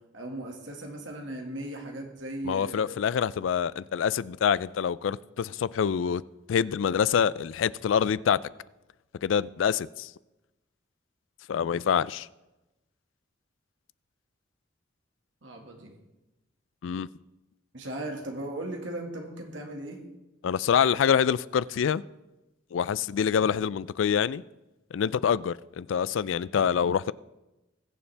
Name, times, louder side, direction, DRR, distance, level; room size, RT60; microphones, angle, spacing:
voice 1, 0.1-2.9 15.4-15.9 17.7-20.0, right 1 dB, 75° right, 2 dB, 1.8 m, -37 dB
voice 2, 2.4-6.2 6.5-8.4 9.2-10.1 11.5-12.3 16.8-17.1 20.4-22.0 22.7-24.4 24.9-27.1, left 7 dB, 80° left, 19 dB, 0.3 m, -26 dB
20.5 x 7.1 x 3.3 m, 1.0 s
head